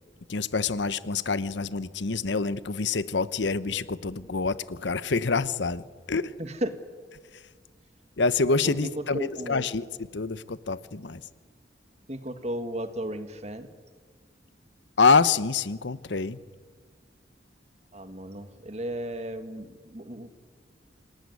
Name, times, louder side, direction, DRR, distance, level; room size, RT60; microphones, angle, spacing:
voice 1, 0.3-5.8 6.1-6.3 8.2-9.8 10.1-11.2 15.0-16.4, left 4 dB, 75° left, 16 dB, 0.9 m, -26 dB
voice 2, 6.4-6.7 8.6-9.7 12.1-13.7 17.9-20.3, right 1 dB, 35° right, 9 dB, 1.8 m, -34 dB
27.5 x 19.0 x 9.5 m, 1.5 s
head